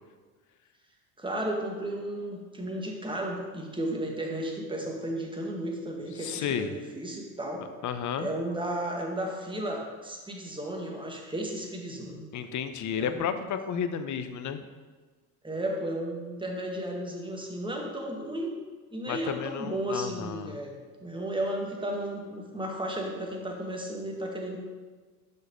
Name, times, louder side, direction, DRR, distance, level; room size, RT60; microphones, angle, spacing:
voice 1, 1.2-7.6 8.2-12.3 13.0-13.4 15.4-18.5 18.9-24.6, right 1 dB, 10° right, 0 dB, 1.6 m, -34 dB
voice 2, 6.2-6.7 7.8-8.3 12.3-14.6 19.1-20.6, left 7 dB, 40° left, 10 dB, 0.7 m, -32 dB
5.8 x 5.4 x 5.2 m, 1.4 s
hypercardioid pair, 70°, 46 cm